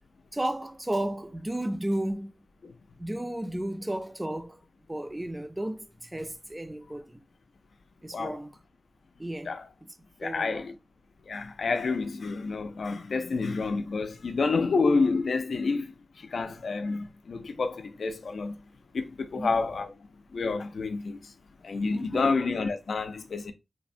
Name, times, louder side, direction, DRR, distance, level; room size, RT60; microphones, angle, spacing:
voice 1, 0.3-2.3 3.0-4.6 4.9-7.2 8.0-8.5 9.2-9.5 10.2-10.7 19.3-19.6 21.9-22.4, right 1 dB, 15° right, 0.4 m, -33 dB
voice 2, 10.2-10.7 11.3-18.6 18.9-19.9 20.3-21.3 21.6-23.5, left 4 dB, 75° left, 0.4 m, -29 dB
3.2 x 2.1 x 2.5 m
wide cardioid pair, 115°, 0 cm